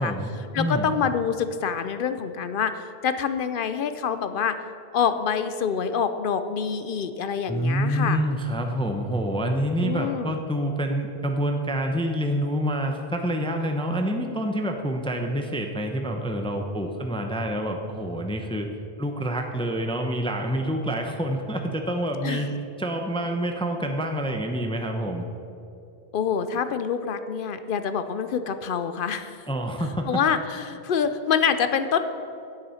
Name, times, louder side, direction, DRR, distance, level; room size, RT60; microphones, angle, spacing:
voice 1, 0.0-0.9 7.5-18.7 19.0-25.2 29.5-30.1, equal, 5° left, 4 dB, 0.6 m, -27 dB
voice 2, 0.5-4.6 4.9-8.2 9.8-10.3 22.2-22.5 26.1-29.4 30.1-32.0, left 7 dB, 60° left, 10 dB, 0.7 m, -26 dB
9.8 x 8.9 x 5.6 m, 2.7 s
omnidirectional pair, 1.1 m